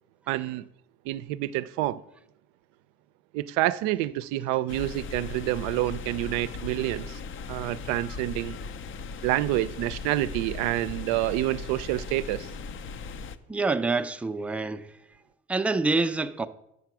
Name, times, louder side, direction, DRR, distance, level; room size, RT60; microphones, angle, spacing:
voice 1, 0.3-0.7 1.1-2.0 3.3-7.2 7.5-8.6 9.2-12.5, right 15 dB, 85° right, 0.5 m, -28 dB
sound 1, 4.7-13.4, left 4 dB, 45° left, 0.5 m, -38 dB
voice 2, 13.5-14.9 15.5-16.5, right 3 dB, 5° right, 0.4 m, -26 dB
8.2 x 5.8 x 6.0 m
supercardioid pair, 95°, 30 cm